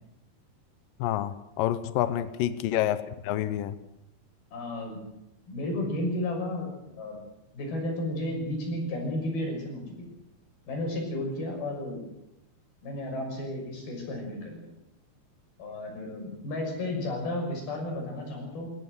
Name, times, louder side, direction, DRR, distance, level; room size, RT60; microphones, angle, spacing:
voice 1, 1.0-3.8, left 12 dB, 75° left, 13 dB, 2.1 m, -28 dB
voice 2, 4.5-5.0 5.5-7.2 7.5-10.1 10.7-12.0 12.8-14.7 15.6-18.7, left 1 dB, 60° left, 1 dB, 8.2 m, -33 dB
22.5 x 16.5 x 7.9 m, 0.87 s
omnidirectional pair, 5.0 m